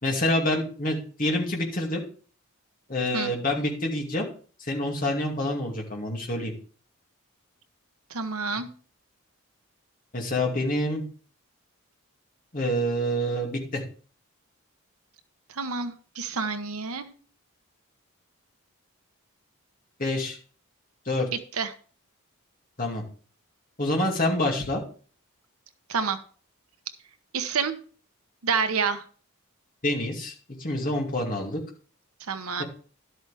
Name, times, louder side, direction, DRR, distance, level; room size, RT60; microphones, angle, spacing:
voice 1, 0.0-2.0 2.9-4.3 4.7-6.5 10.1-11.0 12.5-13.8 20.0-20.4 21.1-21.3 22.8-23.0 23.8-24.8 29.8-30.3 30.6-31.6, left 1 dB, 40° left, 0 dB, 2.5 m, -27 dB
voice 2, 8.1-8.7 15.5-17.1 21.5-21.7 25.9-26.2 27.3-27.8 28.4-29.0 32.3-32.6, right 5 dB, 80° right, 9 dB, 1.0 m, -28 dB
12.0 x 7.9 x 3.5 m, 0.42 s
head